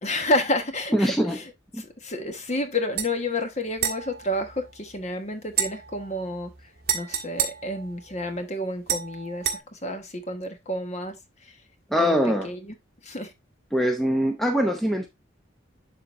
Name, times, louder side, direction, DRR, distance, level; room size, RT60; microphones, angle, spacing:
voice 1, 0.0-1.5 1.8-6.5 6.9-11.5 12.0-12.2 12.4-12.7 13.0-13.3, left 1 dB, 35° left, 1.2 m, -30 dB
voice 2, 0.9-1.4 1.7-1.8 11.9-12.5 13.7-15.1, equal, ahead, 0.8 m, -23 dB
sound 1, 3.0-3.1 3.8-5.1 5.5-8.4 8.9-9.6, right 8 dB, 50° right, 1.6 m, -31 dB
11.5 x 4.0 x 2.6 m
head